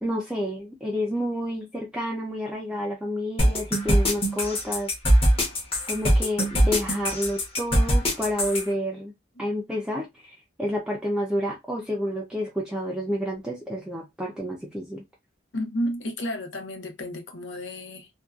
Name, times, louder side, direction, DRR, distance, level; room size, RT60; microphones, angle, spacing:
voice 1, 0.0-5.3 5.9-9.1 9.4-15.0, equal, 5° right, 0.4 m, -30 dB
sound 1, 3.4-8.6, equal, 30° left, 0.9 m, -21 dB
voice 2, 15.5-18.1, equal, 75° left, 0.7 m, -32 dB
2.6 x 2.2 x 2.3 m
head